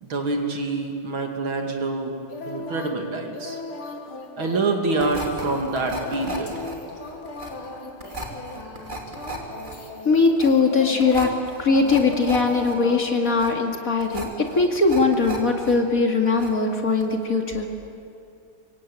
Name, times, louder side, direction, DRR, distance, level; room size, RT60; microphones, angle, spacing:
voice 1, 0.0-2.2 2.5-3.6 4.4-6.6, right 3 dB, 70° right, 3 dB, 3.3 m, -26 dB
sound 1, 2.3-13.4, left 2 dB, 85° left, 3.0 m, -38 dB
sound 2, 5.0-15.7 16.0-16.7 17.0-17.2, right 1 dB, 20° right, 3.1 m, -36 dB
voice 2, 10.0-11.3 11.6-17.7, left 4 dB, 40° left, 3 dB, 2.6 m, -20 dB
25.5 x 23.5 x 8.9 m, 2.6 s
omnidirectional pair, 2.3 m